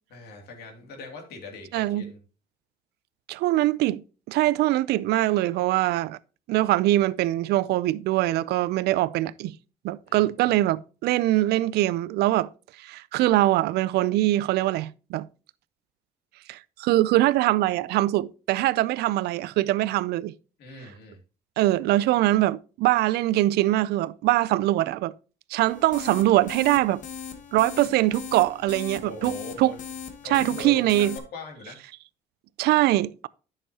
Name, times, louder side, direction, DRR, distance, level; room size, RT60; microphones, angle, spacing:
voice 1, 0.1-2.2 10.1-10.6 20.6-21.2 28.9-29.9 30.2-31.8, left 3 dB, 70° left, 2.5 m, -41 dB
voice 2, 1.7-2.1 3.3-4.0 4.3-6.2 6.5-9.6 9.8-12.5 12.8-15.3 16.5-20.3 21.6-25.1 25.5-27.0 27.5-29.7 30.3-31.2 32.6-33.3, right 16 dB, 75° right, 0.4 m, -23 dB
sound 1, 25.7-31.2, left 7 dB, 50° left, 1.1 m, -39 dB
10.0 x 6.5 x 2.8 m
cardioid pair, 110°, 17 cm